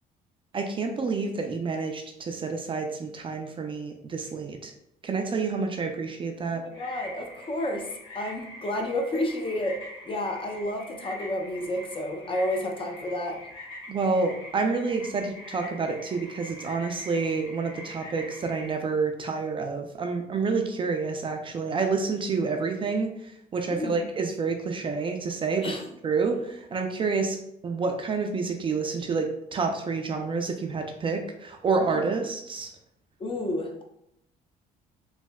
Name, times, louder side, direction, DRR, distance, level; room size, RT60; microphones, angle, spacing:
voice 1, 0.5-4.7 5.0-6.6 13.9-25.7 26.0-27.4 27.6-32.7, right 4 dB, 30° right, 4 dB, 0.3 m, -28 dB
voice 2, 6.5-7.9 8.1-9.8 10.1-13.4 23.7-24.1 25.6-25.8 33.2-33.8, left 1 dB, 30° left, 2 dB, 0.5 m, -30 dB
sound 1, 6.7-18.7, left 1 dB, 85° left, 1.5 m, -44 dB
3.2 x 2.7 x 2.2 m, 0.77 s
cardioid pair, 110°, 17 cm